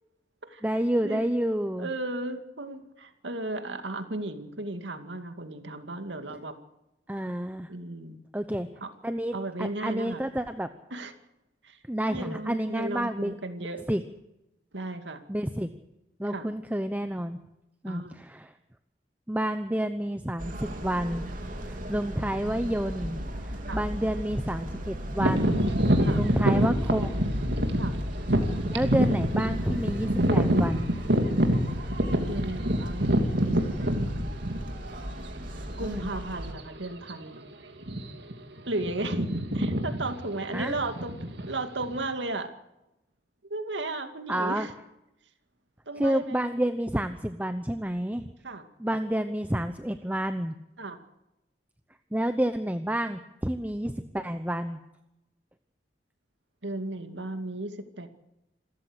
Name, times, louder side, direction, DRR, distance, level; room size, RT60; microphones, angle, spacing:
voice 1, 0.6-1.9 7.1-7.7 8.3-8.7 9.0-10.7 11.9-13.4 13.9-14.0 15.3-15.7 16.2-17.4 17.8-18.5 19.3-21.2 21.7-25.6 26.1-27.4 28.7-30.9 35.8-36.1 40.5-40.7 44.3-44.7 46.0-48.3 48.8-50.5 52.1-54.8, right 1 dB, 10° right, 9 dB, 0.8 m, -29 dB
voice 2, 1.8-6.5 7.7-8.2 8.8-8.9 9.3-10.2 10.9-11.1 11.6-11.8 12.1-13.8 14.7-15.2 16.3-16.5 17.9-18.2 23.7-23.8 26.0-26.2 27.7-27.9 32.1-34.3 35.8-37.4 38.7-39.2 39.5-41.2 41.5-42.5 43.4-44.7 45.9-46.4 48.4-48.6 50.8-51.0 56.6-58.1, right 2 dB, 85° right, 7 dB, 2.4 m, -35 dB
sound 1, 20.4-36.5, equal, 50° right, 3.4 m, -36 dB
sound 2, 25.2-35.0 35.6-35.7 36.4-36.6 36.9-37.1 37.8-38.3 38.6-42.0, equal, 65° right, 2.7 m, -26 dB
27.0 x 14.0 x 8.2 m, 0.90 s
head